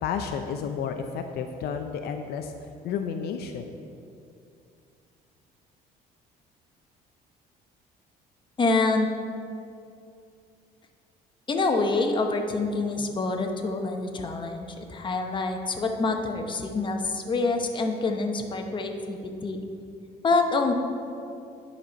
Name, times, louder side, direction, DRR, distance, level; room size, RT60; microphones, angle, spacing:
voice 1, 0.0-2.5 2.8-3.8, left 7 dB, 70° left, 6 dB, 0.5 m, -31 dB
voice 2, 8.6-9.1 11.5-19.6 20.2-20.7, left 3 dB, 30° left, 4 dB, 0.8 m, -26 dB
10.0 x 4.2 x 5.2 m, 2.5 s
cardioid pair, 110°, 17 cm